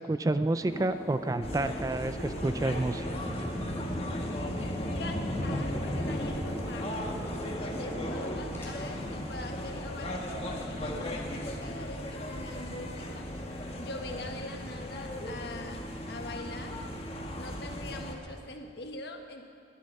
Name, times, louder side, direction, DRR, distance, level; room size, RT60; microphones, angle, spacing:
voice 1, 0.0-3.1, right 2 dB, 20° right, 11 dB, 0.3 m, -29 dB
sound 1, 0.6-8.7, equal, 15° left, 3.5 m, -41 dB
sound 2, 1.4-18.1, left 1 dB, 30° left, 1.5 m, -36 dB
voice 2, 5.0-7.0 7.6-13.3 13.8-16.8 17.4-19.4, left 2 dB, 60° left, 4 dB, 1.5 m, -43 dB
21.0 x 11.5 x 5.4 m, 2.3 s
head